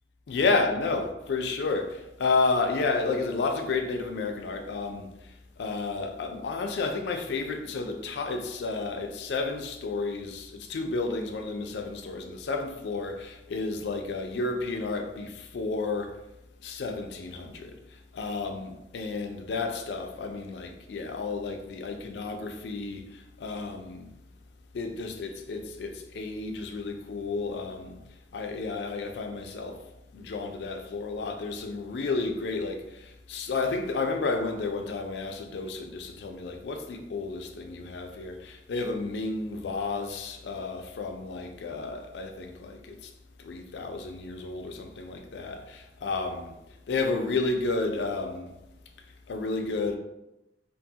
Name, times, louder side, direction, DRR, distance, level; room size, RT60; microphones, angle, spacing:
voice 1, 0.3-5.1 5.6-16.1 16.6-17.7 18.1-24.1 24.7-28.0 28.3-29.8 30.1-43.1 43.4-46.5 46.9-48.5 49.3-50.0, left 3 dB, 65° left, 0.4 m, -31 dB
2.7 x 2.2 x 2.7 m
head